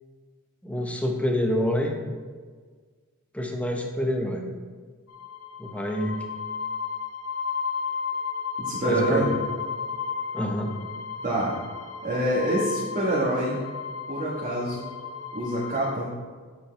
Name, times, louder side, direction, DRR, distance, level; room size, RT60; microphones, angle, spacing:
voice 1, 0.6-2.0 3.3-4.5 5.6-6.1 8.8-9.4 10.3-10.7, left 1 dB, 5° left, 2 dB, 0.9 m, -27 dB
sound 1, 5.1-15.9, left 6 dB, 80° left, 0.6 m, -34 dB
voice 2, 8.6-9.3 11.2-11.6 12.0-13.6 14.1-14.9 15.3-16.1, right 1 dB, 40° right, -7 dB, 1.3 m, -26 dB
8.2 x 7.3 x 3.4 m, 1.5 s
head